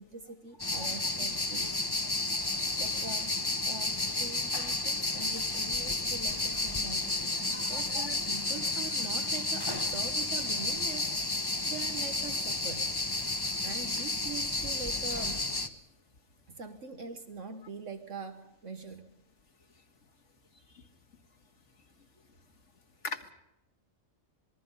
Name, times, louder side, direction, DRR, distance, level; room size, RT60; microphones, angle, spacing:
voice 1, 0.0-2.2 2.8-3.4 3.6-7.1 7.4-12.9 13.6-15.5 16.5-19.2, right 4 dB, 65° right, 8 dB, 1.7 m, -43 dB
sound 1, 0.6-15.7, left 2 dB, 20° left, 1.1 m, -32 dB
voice 2, 7.5-8.1 23.0-23.3, left 4 dB, 60° left, 4 dB, 2.2 m, -40 dB
26.5 x 21.0 x 5.5 m, 0.87 s
omnidirectional pair, 1.4 m